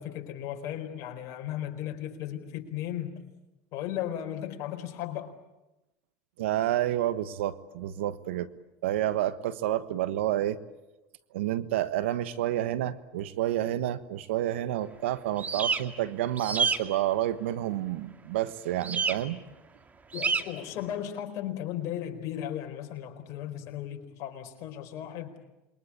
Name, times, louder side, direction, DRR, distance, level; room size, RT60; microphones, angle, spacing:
voice 1, 0.0-3.2 3.7-5.4 20.1-25.3, left 11 dB, 60° left, 5 dB, 4.5 m, -36 dB
voice 2, 6.4-8.5 8.8-10.6 11.3-19.4, right 13 dB, 90° right, 14 dB, 1.3 m, -29 dB
sound 1, 15.4-15.8 16.4-16.8 18.8-19.1 20.1-20.4, right 5 dB, 25° right, 2.1 m, -27 dB
28.0 x 22.5 x 8.7 m, 0.98 s
supercardioid pair, 105°, 6 cm